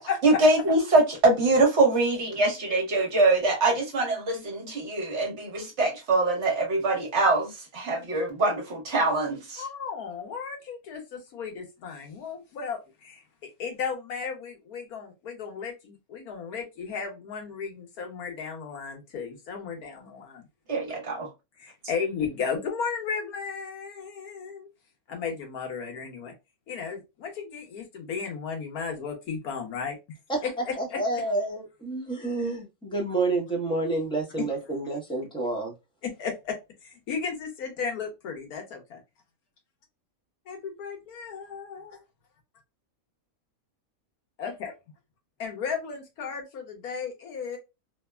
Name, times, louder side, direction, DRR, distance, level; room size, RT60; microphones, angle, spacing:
voice 1, 0.2-9.6 20.7-21.3, right 2 dB, 50° right, 1.2 m, -23 dB
voice 2, 9.6-13.2 13.6-20.4 21.6-24.7 25.1-26.3 26.7-30.0 30.4-31.3 34.4-34.5 36.0-39.0 40.5-42.0 44.4-44.7 45.4-47.6, left 6 dB, 85° left, 1.4 m, -34 dB
voice 3, 30.8-35.7, right 2 dB, 5° left, 0.7 m, -29 dB
3.3 x 2.1 x 2.2 m
omnidirectional pair, 1.5 m